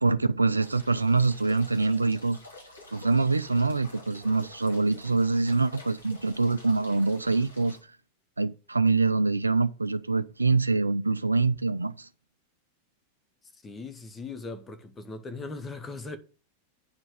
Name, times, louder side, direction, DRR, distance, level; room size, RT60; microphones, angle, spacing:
voice 1, 0.0-2.4 2.9-7.8 8.4-12.1, right 3 dB, 80° right, 0.4 m, -25 dB
sound 1, 0.6-7.8, left 2 dB, 75° left, 3.2 m, -49 dB
voice 2, 13.6-16.2, left 3 dB, 15° left, 1.2 m, -39 dB
9.3 x 4.6 x 6.6 m
figure-of-eight pair, 90°, 0 cm